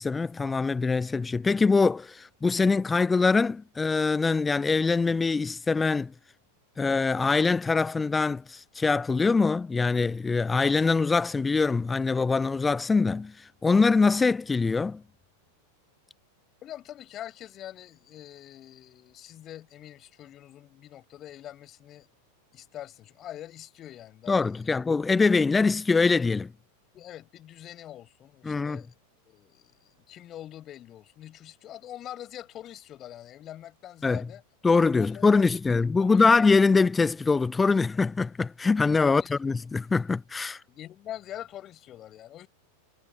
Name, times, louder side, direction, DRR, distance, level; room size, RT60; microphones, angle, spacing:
voice 1, 0.0-6.1 6.8-13.3 13.6-15.0 24.3-26.5 28.4-28.8 34.0-34.2 34.6-40.6, left 4 dB, 10° left, 0.4 m, -23 dB
voice 2, 16.6-22.1 22.5-24.8 26.9-28.9 29.2-34.4 35.0-36.5 39.0-39.7 40.7-42.5, left 12 dB, 30° left, 6.1 m, -44 dB
figure-of-eight pair, 90°, 0 cm